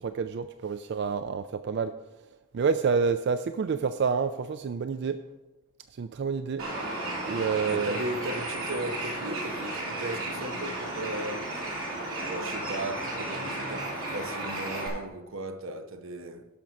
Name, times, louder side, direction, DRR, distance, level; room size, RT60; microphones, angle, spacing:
voice 1, 0.0-2.0 2.5-5.2 5.9-6.6 7.2-8.0, right 5 dB, 55° right, 0.3 m, -28 dB
Bird, 6.6-14.9, right 2 dB, 90° right, 3.3 m, -34 dB
voice 2, 7.6-11.5 12.2-16.5, right 1 dB, 70° right, 0.8 m, -36 dB
11.5 x 6.1 x 5.2 m
head